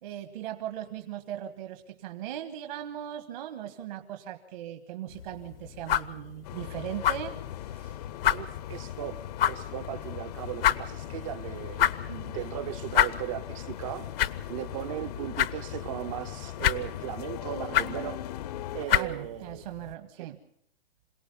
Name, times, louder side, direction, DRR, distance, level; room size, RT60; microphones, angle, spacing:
voice 1, 0.0-7.4 7.7-8.0 18.9-20.4, right 11 dB, 50° right, 1.5 m, -39 dB
sound 1, 5.1-19.9, left 11 dB, 65° left, 0.9 m, -31 dB
sound 2, 6.4-18.9, left 12 dB, 40° left, 0.7 m, -39 dB
voice 2, 8.3-18.2 18.7-19.7 20.2-20.3, right 14 dB, 30° right, 0.7 m, -37 dB
27.0 x 17.5 x 5.5 m
hypercardioid pair, 155°, 31 cm